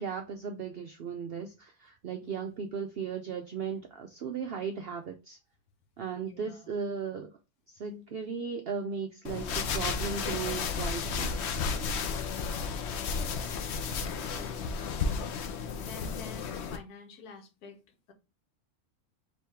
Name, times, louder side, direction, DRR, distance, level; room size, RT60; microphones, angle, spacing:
voice 1, 0.0-5.4 6.0-7.3 7.7-11.3, right 6 dB, 80° right, 0.5 m, -36 dB
voice 2, 2.2-2.6 6.2-6.7 12.3-12.8 14.3-18.1, left 4 dB, 85° left, 1.4 m, -49 dB
sound 1, 9.2-16.8, left 5 dB, 60° left, 0.7 m, -33 dB
4.5 x 3.1 x 3.4 m
omnidirectional pair, 1.6 m